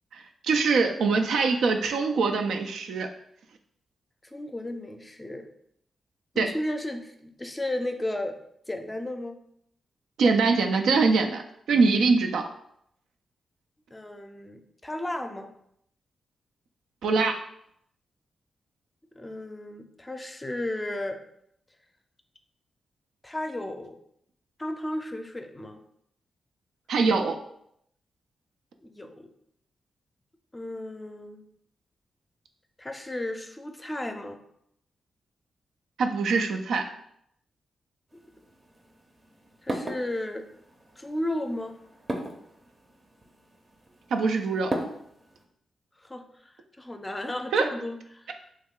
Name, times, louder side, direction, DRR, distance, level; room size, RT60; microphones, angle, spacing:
voice 1, 0.1-3.1 6.4-6.5 10.2-11.4 11.7-12.4 17.0-17.4 26.9-27.4 36.0-36.8 44.1-44.7 47.5-47.7, right 4 dB, 85° right, 4 dB, 0.3 m, -23 dB
voice 2, 4.2-5.5 6.3-8.4 8.7-9.4 13.9-15.5 19.2-21.2 23.2-24.0 24.6-25.8 28.8-29.3 30.5-31.4 32.8-34.4 39.6-40.4 41.0-41.7 46.0-48.3, left 1 dB, 25° left, 5 dB, 0.5 m, -34 dB
sound 1, 38.1-45.5, right 1 dB, 40° right, 0.6 m, -38 dB
3.1 x 2.2 x 3.6 m, 0.73 s
supercardioid pair, 50°, 0 cm